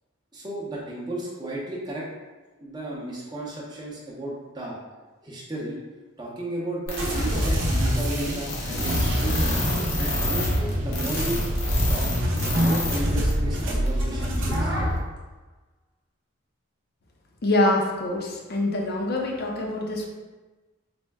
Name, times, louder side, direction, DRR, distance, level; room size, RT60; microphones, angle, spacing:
voice 1, 0.3-2.1 2.6-4.8 5.2-5.8 6.2-9.6 10.0-11.4 11.9-12.1 12.3-14.9, right 1 dB, 20° right, -4 dB, 0.6 m, -34 dB
sound 1, 6.9-13.0 13.3-13.4 13.9-14.0, left 2 dB, 90° left, 1.0 m, -30 dB
sound 2, 7.0-15.0, equal, 65° right, 0.6 m, -25 dB
voice 2, 17.4-20.1, left 2 dB, 45° left, 0 dB, 0.5 m, -25 dB
4.1 x 2.1 x 3.4 m, 1.3 s
head